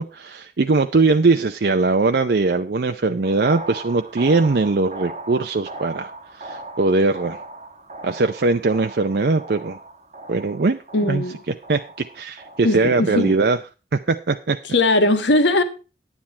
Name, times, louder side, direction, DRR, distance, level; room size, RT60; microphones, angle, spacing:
voice 1, 0.0-7.4 8.0-9.8 10.3-10.8 11.1-13.6 13.9-14.6, right 3 dB, 60° right, 0.5 m, -20 dB
sound 1, 3.2-13.4, right 2 dB, 40° right, 1.1 m, -38 dB
voice 2, 10.9-11.4 12.6-13.3 14.7-15.6, left 2 dB, 90° left, 1.5 m, -19 dB
10.0 x 9.7 x 4.3 m
head